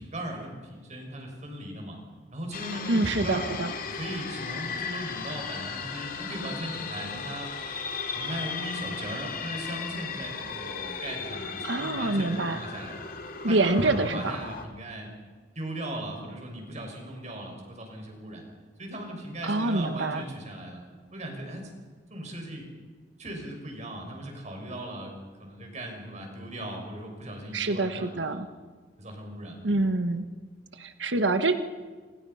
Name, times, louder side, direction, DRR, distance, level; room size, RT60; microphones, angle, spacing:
voice 1, 0.0-2.0 2.3-3.5 3.8-7.5 8.1-13.0 13.5-15.1 15.5-18.4 18.8-20.8 21.1-21.7 22.1-22.7 23.2-25.1 25.4-28.5 29.0-29.7, right 1 dB, 40° right, 2 dB, 6.5 m, -38 dB
sound 1, 2.5-14.7, left 5 dB, 50° left, 2.7 m, -36 dB
voice 2, 2.9-3.7 11.6-12.6 13.4-14.4 19.4-20.2 27.5-28.5 29.6-30.3 30.7-31.6, right 2 dB, 70° right, 9 dB, 1.4 m, -26 dB
28.0 x 27.5 x 5.8 m, 1.4 s
head